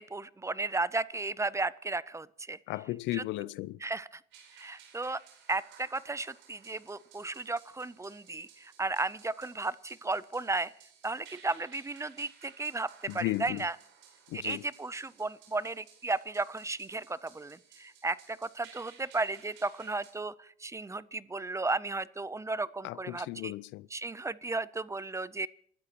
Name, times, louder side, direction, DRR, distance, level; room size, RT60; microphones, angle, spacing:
voice 1, 0.0-2.6 3.1-3.2 3.8-4.2 4.5-5.2 5.5-10.7 11.0-13.8 14.3-23.5 23.9-25.5, right 3 dB, 15° right, 0.6 m, -34 dB
voice 2, 2.7-3.8 13.1-13.6 14.3-14.6 22.8-23.9, left 18 dB, 70° left, 0.6 m, -35 dB
sound 1, 4.3-20.1, right 8 dB, 75° right, 4.5 m, -58 dB
29.5 x 13.0 x 2.9 m
supercardioid pair, 85°, 20 cm